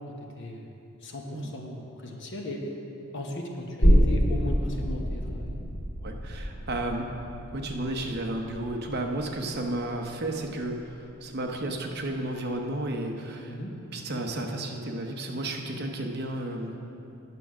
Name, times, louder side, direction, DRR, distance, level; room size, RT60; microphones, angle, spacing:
voice 1, 1.0-2.8 3.1-5.6 13.4-13.7, left 1 dB, 55° left, 1 dB, 1.0 m, -37 dB
sound 1, 3.8-11.1 11.5-11.6, equal, 80° left, 2.4 m, -27 dB
voice 2, 6.0-7.1 7.5-13.6 13.9-16.7, right 1 dB, 45° right, 3 dB, 0.8 m, -32 dB
9.6 x 6.1 x 6.1 m, 2.9 s
head